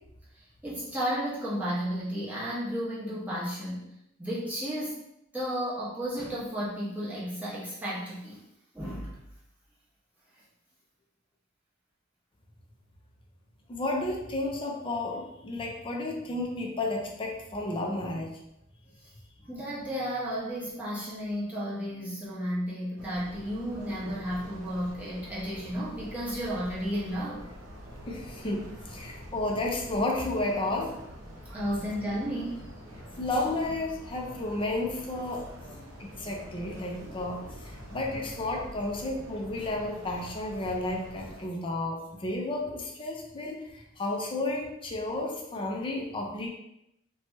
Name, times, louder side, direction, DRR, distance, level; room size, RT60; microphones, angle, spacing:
voice 1, 0.6-3.8 4.2-5.0 5.3-8.4 8.7-9.2 19.4-27.5 29.5-29.6 31.5-32.6 35.7-35.9, equal, 10° right, -8 dB, 0.9 m, -33 dB
voice 2, 13.7-18.3 28.1-30.9 33.2-35.5 36.0-46.5, left 2 dB, 25° left, 0 dB, 0.5 m, -32 dB
sound 1, 23.0-41.5, equal, 85° right, 0.7 m, -45 dB
2.9 x 2.2 x 3.0 m, 0.82 s
head